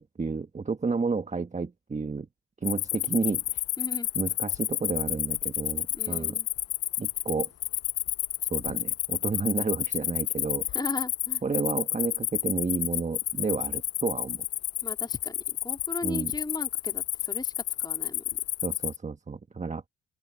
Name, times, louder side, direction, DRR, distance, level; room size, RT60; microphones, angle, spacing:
voice 1, 0.0-2.3 2.6-3.6 4.1-6.4 7.0-7.5 8.5-10.8 11.4-14.4 16.0-16.3 18.6-19.8, right 4 dB, 25° right, 1.3 m, -31 dB
Cricket, 2.6-19.0, left 13 dB, 55° left, 0.5 m, -30 dB
voice 2, 3.8-4.1 5.9-6.5 10.7-11.4 14.8-18.2, left 2 dB, 15° left, 3.1 m, -37 dB
open air
cardioid pair, 90°, 30 cm